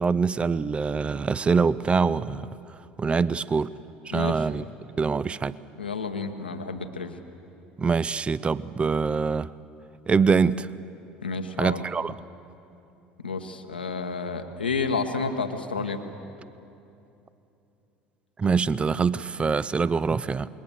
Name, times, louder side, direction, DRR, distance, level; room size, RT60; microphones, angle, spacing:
voice 1, 0.0-2.5 3.0-3.7 4.1-4.6 5.0-5.6 7.8-9.5 10.1-10.7 11.6-12.1 18.4-20.5, right 5 dB, 20° right, 18 dB, 0.5 m, -24 dB
voice 2, 4.1-4.5 5.8-7.2 11.2-11.8 13.2-16.0, left 4 dB, 80° left, 7 dB, 1.2 m, -30 dB
27.5 x 22.0 x 7.1 m, 2.9 s
figure-of-eight pair, 65°, 5 cm